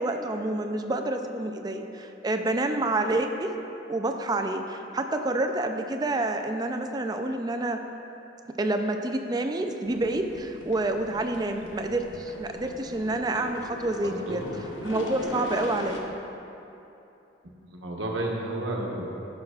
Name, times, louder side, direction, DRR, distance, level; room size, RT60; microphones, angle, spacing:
voice 1, 0.0-3.5 3.9-7.8 8.6-14.4 14.8-16.1, right 2 dB, 20° right, 5 dB, 0.4 m, -28 dB
sound 1, 9.8-16.0, left 1 dB, 85° left, 0.8 m, -40 dB
voice 2, 11.4-11.8 14.0-14.5 17.4-19.1, right 1 dB, 85° right, -1 dB, 1.1 m, -33 dB
13.0 x 6.2 x 2.4 m, 2.9 s
head